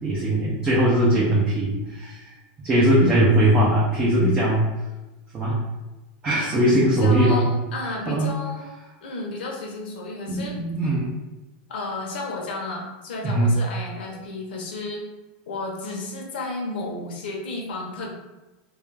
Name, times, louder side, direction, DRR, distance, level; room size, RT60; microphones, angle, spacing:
voice 1, 0.0-2.3 2.6-4.7 5.3-5.6 6.2-7.5 8.1-8.3 10.3-11.1 13.2-13.5, right 1 dB, 15° right, -6 dB, 0.4 m, -20 dB
voice 2, 7.0-8.7 9.0-10.6 11.7-15.0 15.5-18.1, left 2 dB, 75° left, -1 dB, 0.8 m, -32 dB
2.3 x 2.3 x 3.2 m, 1.1 s
supercardioid pair, 170°, 5 cm